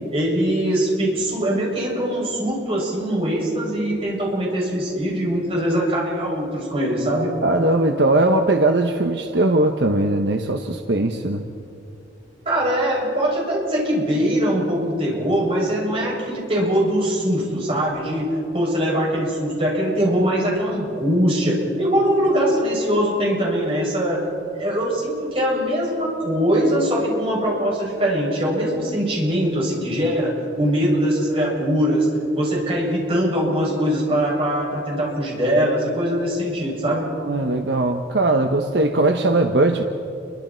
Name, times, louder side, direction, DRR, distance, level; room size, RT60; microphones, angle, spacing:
voice 1, 0.1-7.3 12.4-24.2 24.5-32.1 32.3-37.1, equal, 30° right, -4 dB, 7.4 m, -22 dB
voice 2, 7.4-11.4 37.2-39.8, right 2 dB, 70° right, 5 dB, 1.1 m, -19 dB
30.0 x 24.0 x 4.5 m, 2.8 s
head